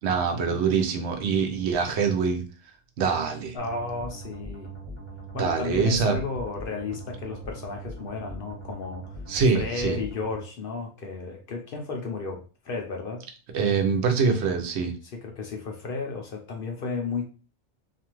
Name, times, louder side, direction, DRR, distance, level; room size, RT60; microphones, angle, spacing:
voice 1, 0.0-2.4 3.0-3.6 5.4-6.2 9.3-10.0 13.5-14.9, right 5 dB, 70° right, 4 dB, 0.8 m, -24 dB
voice 2, 3.5-4.8 5.3-9.2 9.5-13.2 15.1-17.3, left 4 dB, 60° left, 2 dB, 0.7 m, -33 dB
sound 1, 3.6-10.4, right 1 dB, 25° right, 1.2 m, -40 dB
2.5 x 2.3 x 2.9 m, 0.36 s
omnidirectional pair, 1.2 m